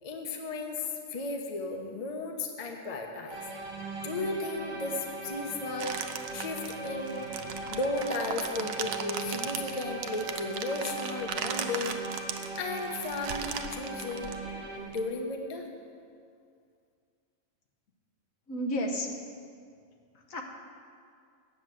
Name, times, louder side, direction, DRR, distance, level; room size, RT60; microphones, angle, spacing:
voice 1, 0.0-3.4 4.0-7.2 7.7-14.3 14.8-15.7, left 2 dB, 30° left, 3 dB, 0.9 m, -35 dB
sound 1, 3.3-14.8, right 2 dB, 50° right, 1.7 m, -39 dB
sound 2, 5.8-15.0, right 7 dB, 85° right, 1.1 m, -38 dB
voice 2, 18.5-19.1 20.1-20.4, equal, 80° left, 1 dB, 1.5 m, -32 dB
9.1 x 7.1 x 7.7 m, 2.3 s
omnidirectional pair, 1.4 m